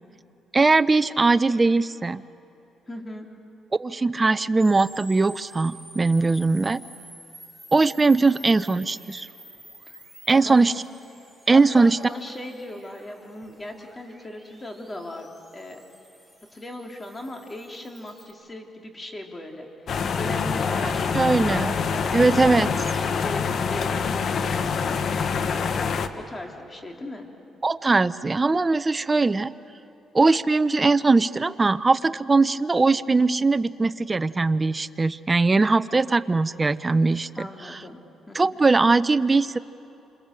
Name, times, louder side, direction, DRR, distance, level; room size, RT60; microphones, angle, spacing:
voice 1, 0.5-2.2 3.8-6.8 7.7-9.3 10.3-10.7 11.5-12.0 20.8-21.7 22.1-22.7 27.6-29.5 30.1-37.8 38.3-39.6, right 3 dB, 25° right, 14 dB, 0.7 m, -20 dB
voice 2, 2.9-3.3 10.3-10.6 11.5-15.3 15.5-15.8 16.5-21.2 21.5-25.8 26.2-27.3 37.4-38.6, left 1 dB, 25° left, 2 dB, 3.4 m, -38 dB
sound 1, 4.6-18.3, right 1 dB, 5° left, 7.5 m, -49 dB
sound 2, 19.9-26.1, left 5 dB, 55° left, 1.3 m, -25 dB
28.0 x 26.5 x 7.6 m, 2.8 s
cardioid pair, 90°, 0 cm